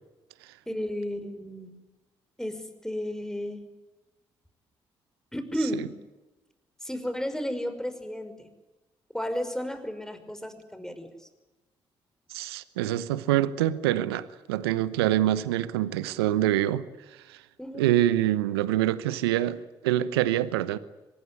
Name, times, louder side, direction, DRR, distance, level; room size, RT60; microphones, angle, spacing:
voice 1, 0.7-1.8 2.4-3.7 5.3-6.0 6.8-8.5 9.1-11.3 17.6-17.9, equal, 5° left, 5.7 m, -33 dB
voice 2, 12.3-16.8 17.3-17.4 17.8-20.8, right 13 dB, 85° right, 0.9 m, -25 dB
25.0 x 20.5 x 9.8 m
hypercardioid pair, 40°, 13 cm